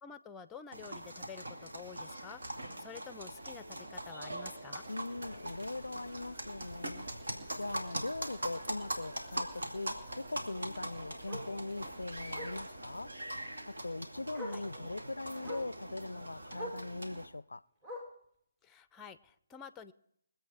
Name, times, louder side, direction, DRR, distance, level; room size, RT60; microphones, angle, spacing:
voice 1, 0.0-2.4 2.8-4.9 14.4-14.6 18.6-19.9, left 6 dB, 15° left, 0.6 m, -49 dB
sound 1, 0.7-17.3, right 1 dB, 80° right, 2.3 m, -42 dB
voice 2, 4.9-7.1 7.6-13.1 13.7-17.6, left 2 dB, 90° left, 0.4 m, -41 dB
sound 2, 5.2-12.7, right 2 dB, 60° right, 1.9 m, -57 dB
Bark, 11.3-11.5 12.3-12.6 13.8-13.9 14.3-14.7 15.4-15.7 16.5-16.9 17.8-18.3 19.2-19.3, equal, 25° right, 3.4 m, -44 dB
23.0 x 8.0 x 4.9 m
figure-of-eight pair, 150°, 0 cm